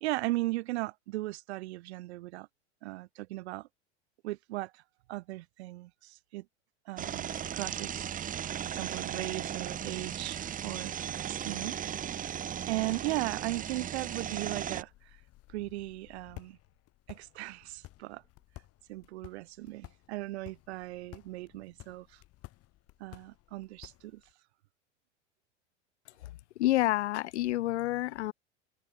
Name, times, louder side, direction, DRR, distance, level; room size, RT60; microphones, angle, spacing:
voice 1, 0.0-2.5 2.8-3.7 4.2-4.8 5.1-6.5 6.9-12.4 12.7-15.1 15.5-16.6 17.1-18.2 18.9-22.2 23.0-24.2, right 18 dB, 70° right, 0.7 m, -37 dB
sound 1, 7.0-14.8, right 9 dB, 25° right, 0.9 m, -36 dB
sound 2, 14.8-24.3, left 17 dB, 45° left, 3.0 m, -54 dB
voice 2, 26.2-28.3, left 15 dB, 75° left, 0.8 m, -29 dB
open air
hypercardioid pair, 95°, 34 cm